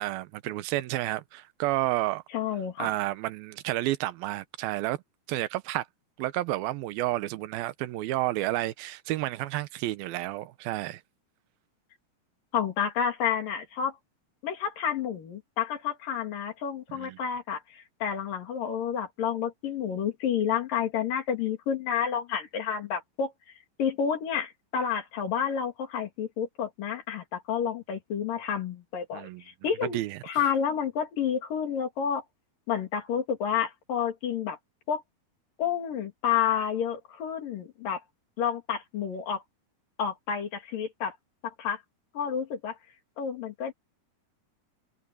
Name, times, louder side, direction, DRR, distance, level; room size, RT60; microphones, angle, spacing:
voice 1, 0.0-2.2 2.8-5.0 5.3-5.9 6.2-11.0 16.9-17.2 29.1-29.4 29.8-30.2, right 16 dB, 85° right, 2.7 m, -30 dB
voice 2, 2.3-2.9 12.5-14.0 14.4-23.3 23.8-32.2 32.7-34.6 34.9-35.0 35.6-38.0 38.4-39.4 40.0-41.2 41.4-41.8 42.1-42.8 43.2-43.7, left 8 dB, 70° left, 4.4 m, -30 dB
omnidirectional pair, 4.2 m